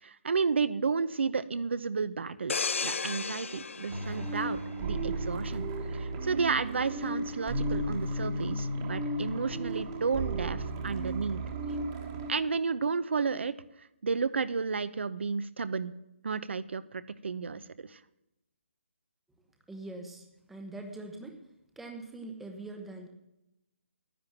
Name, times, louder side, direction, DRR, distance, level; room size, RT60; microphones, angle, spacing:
voice 1, 0.0-5.7 5.9-11.4 12.3-13.5 14.0-15.9 16.2-17.6 17.9-18.0, right 5 dB, 65° right, 15 dB, 0.8 m, -32 dB
sound 1, 2.5-5.2 5.6-5.9, left 5 dB, 90° left, 0.5 m, -35 dB
sound 2, 3.9-12.3, right 1 dB, 20° right, 1.3 m, -34 dB
voice 2, 19.7-21.4 21.8-23.1, right 2 dB, ahead, 3 dB, 0.8 m, -43 dB
10.5 x 9.3 x 7.2 m, 0.90 s
hypercardioid pair, 170°, 7 cm